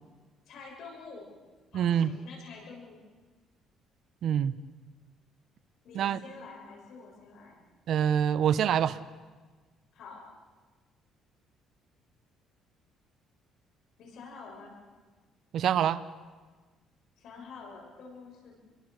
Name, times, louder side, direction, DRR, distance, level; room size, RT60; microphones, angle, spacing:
voice 1, 0.5-1.3 1.7-3.0 5.8-7.6 9.9-10.2 14.0-14.7 17.2-18.6, left 4 dB, 60° left, 7.0 m, -47 dB
voice 2, 1.7-2.1 4.2-4.5 5.9-6.2 7.9-9.0 15.5-16.0, right 9 dB, 55° right, 1.1 m, -25 dB
29.5 x 22.5 x 6.8 m
cardioid pair, 150°, 0 cm